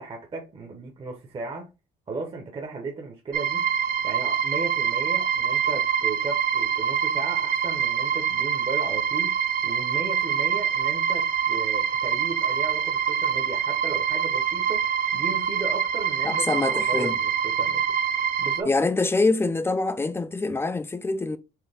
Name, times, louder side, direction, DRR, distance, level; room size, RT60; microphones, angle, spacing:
voice 1, 0.0-1.7 2.1-3.6 4.0-17.8 18.4-18.7, right 3 dB, 30° right, 1.0 m, -36 dB
sound 1, 3.3-18.6, right 7 dB, 60° right, 0.5 m, -25 dB
voice 2, 16.2-17.2 18.7-21.4, left 3 dB, 15° left, 0.5 m, -25 dB
4.6 x 2.8 x 3.5 m
cardioid pair, 110°, 17 cm